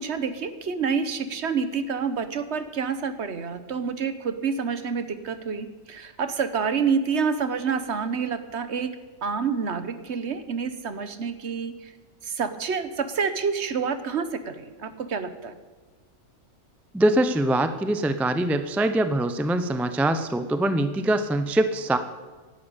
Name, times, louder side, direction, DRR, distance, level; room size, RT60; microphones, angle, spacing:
voice 1, 0.0-8.9 9.2-11.9 12.2-15.5, right 6 dB, 60° right, 11 dB, 1.2 m, -28 dB
voice 2, 16.9-22.0, right 1 dB, ahead, 10 dB, 0.5 m, -23 dB
11.5 x 11.0 x 9.0 m, 1.3 s
omnidirectional pair, 1.4 m